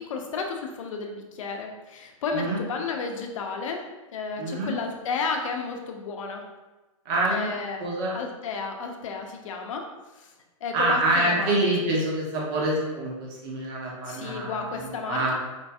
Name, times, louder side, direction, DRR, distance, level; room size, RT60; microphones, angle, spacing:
voice 1, 0.0-3.8 4.1-6.4 7.3-7.8 8.1-9.9 10.1-10.3 10.6-11.9 14.0-15.3, left 4 dB, 70° left, 3 dB, 0.6 m, -32 dB
voice 2, 4.4-4.8 7.0-8.1 10.7-15.3, right 1 dB, 45° right, -4 dB, 1.2 m, -26 dB
4.5 x 2.6 x 2.3 m, 1.1 s
hypercardioid pair, 125°, 17 cm